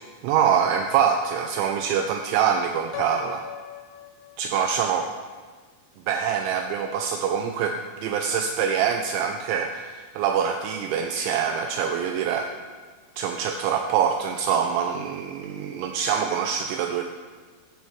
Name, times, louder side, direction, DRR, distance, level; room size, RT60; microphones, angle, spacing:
voice 1, 0.2-3.4 4.4-5.1 6.1-12.5 13.2-17.0, right 7 dB, 85° right, 4 dB, 2.8 m, -25 dB
Piano, 2.9-4.9, left 11 dB, 80° left, 2.9 m, -39 dB
16.5 x 8.4 x 3.1 m, 1.5 s
omnidirectional pair, 5.5 m